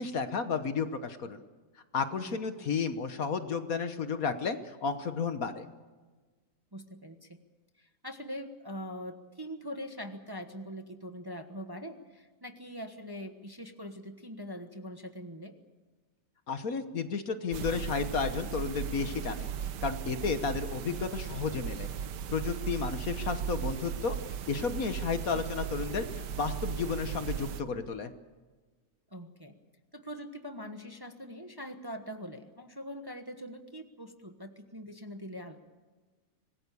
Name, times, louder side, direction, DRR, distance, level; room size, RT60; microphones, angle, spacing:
voice 1, 0.0-1.4 1.9-5.7 16.5-21.9 22.3-24.2 24.5-28.1, left 5 dB, 55° left, 9 dB, 1.5 m, -32 dB
voice 2, 2.2-2.7 6.7-7.4 7.8-15.6 22.7-22.8 29.1-29.6 29.9-35.6, equal, 15° right, 6 dB, 1.2 m, -43 dB
sound 1, 17.5-27.6, right 8 dB, 80° right, 1.6 m, -37 dB
26.0 x 20.0 x 6.9 m, 1.3 s
omnidirectional pair, 1.8 m